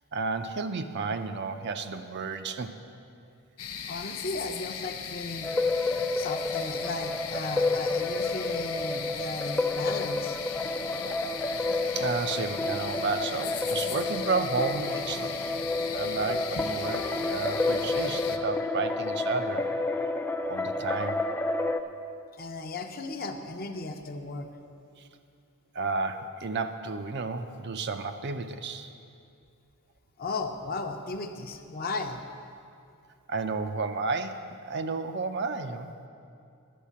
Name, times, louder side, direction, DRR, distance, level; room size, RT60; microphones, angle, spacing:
voice 1, 0.1-2.8 11.9-15.4 15.9-19.7 20.5-21.2 25.0-25.1 25.7-28.9 33.3-35.9, right 4 dB, 50° right, 8 dB, 0.5 m, -32 dB
sound 1, 3.6-18.4, left 7 dB, 85° left, 0.7 m, -38 dB
voice 2, 3.9-5.6 6.1-10.4 22.4-24.5 30.2-32.2, left 3 dB, 40° left, 5 dB, 0.7 m, -35 dB
sound 2, 5.4-21.8, left 2 dB, 10° left, 0.3 m, -30 dB
10.0 x 6.5 x 8.4 m, 2.5 s
head